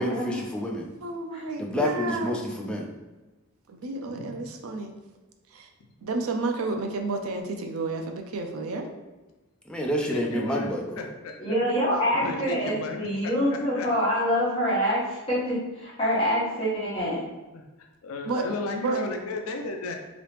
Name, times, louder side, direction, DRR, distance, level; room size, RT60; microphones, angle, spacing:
voice 1, 0.0-0.9 1.6-2.9 9.7-11.1, equal, 5° left, -1 dB, 0.4 m, -28 dB
voice 2, 1.0-2.3 3.7-4.9 5.5-5.7 6.0-8.9 18.3-18.4 18.8-19.0, right 3 dB, 70° right, 4 dB, 0.5 m, -31 dB
voice 3, 4.1-4.5 10.0-10.7 11.0-11.5 12.1-13.9 17.5-17.6 18.0-20.0, left 2 dB, 65° left, 3 dB, 0.4 m, -35 dB
voice 4, 11.4-17.2, equal, 25° left, -10 dB, 1.3 m, -26 dB
3.0 x 2.9 x 3.2 m, 1.1 s
head